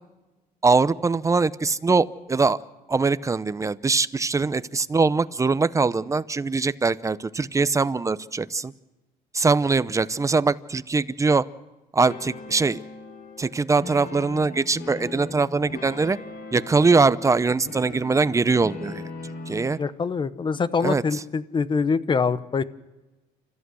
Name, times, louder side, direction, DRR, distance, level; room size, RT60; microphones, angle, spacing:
voice 1, 0.6-2.6 2.9-8.7 9.3-11.4 11.9-12.8 13.4-16.2 16.5-19.0 19.5-19.8 20.8-21.2, right 4 dB, 20° right, 16 dB, 0.7 m, -22 dB
sound 1, 12.1-19.8, left 3 dB, 65° left, 4.3 m, -39 dB
voice 2, 19.8-22.6, left 5 dB, 30° left, 16 dB, 0.9 m, -24 dB
29.5 x 14.5 x 6.3 m, 1.1 s
cardioid pair, 110°, 17 cm